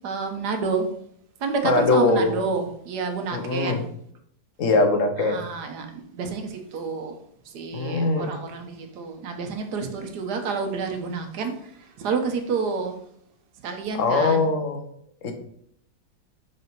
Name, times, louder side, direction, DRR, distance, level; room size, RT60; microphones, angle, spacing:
voice 1, 0.0-0.9 1.4-3.9 5.2-7.2 7.4-13.0 13.6-14.5, right 4 dB, 75° right, 5 dB, 1.5 m, -29 dB
voice 2, 1.6-2.4 3.3-3.8 4.6-5.4 7.7-8.3 13.9-14.8 15.2-15.3, left 3 dB, 55° left, 5 dB, 1.3 m, -21 dB
6.2 x 5.1 x 4.6 m, 0.68 s
omnidirectional pair, 1.8 m